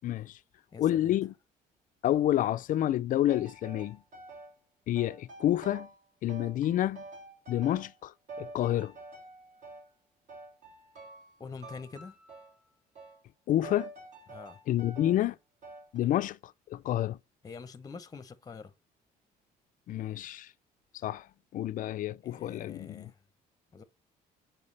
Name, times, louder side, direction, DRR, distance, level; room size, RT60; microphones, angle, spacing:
voice 1, 0.0-0.4 0.8-1.3 2.0-4.0 4.9-5.9 6.2-7.0 7.5-8.1 8.4-8.9 13.5-13.9 14.7-15.4 15.9-17.2 19.9-20.5 21.0-21.3 21.5-23.1, left 12 dB, 55° left, 0.4 m, -29 dB
voice 2, 0.7-1.1 11.4-12.2 14.3-14.6 17.4-18.7 22.2-23.2 23.7-23.8, left 5 dB, 20° left, 0.7 m, -45 dB
sound 1, 3.3-4.5 5.0-6.0 6.3-8.0 8.3-9.9 10.3-11.3 11.6-12.6 13.0-13.2 13.6-15.2 15.6-16.0, right 2 dB, 45° right, 2.3 m, -48 dB
7.1 x 4.5 x 3.2 m
cardioid pair, 110°, 17 cm